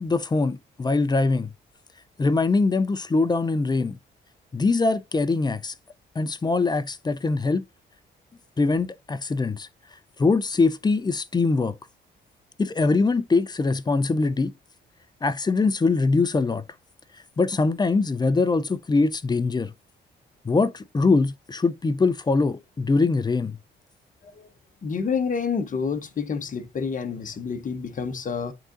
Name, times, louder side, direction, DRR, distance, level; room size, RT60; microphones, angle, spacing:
voice 1, 0.0-1.5 2.2-4.0 4.5-5.7 6.2-7.6 8.6-9.7 10.2-11.7 12.6-14.5 15.2-16.6 17.4-19.7 20.4-23.6, left 3 dB, 20° left, 0.6 m, -22 dB
voice 2, 24.8-28.5, left 5 dB, 40° left, 1.1 m, -28 dB
11.0 x 3.8 x 2.5 m
cardioid pair, 90°, 20 cm